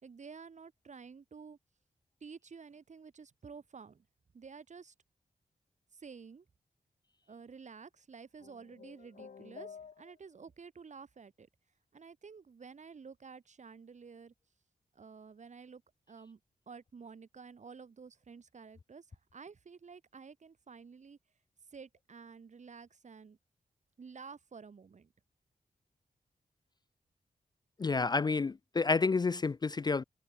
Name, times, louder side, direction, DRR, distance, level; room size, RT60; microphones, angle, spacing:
voice 1, 0.0-1.6 2.2-4.1 4.3-4.9 5.9-6.5 7.3-11.5 11.9-14.3 14.9-15.8 16.1-16.4 16.7-21.2 21.7-23.4 24.0-25.1, right 5 dB, 55° right, 4.3 m, -51 dB
sound 1, 8.4-10.5, left 6 dB, 65° left, 2.4 m, -51 dB
voice 2, 27.8-30.0, left 4 dB, 30° left, 0.4 m, -29 dB
wide cardioid pair, 160°, 15 cm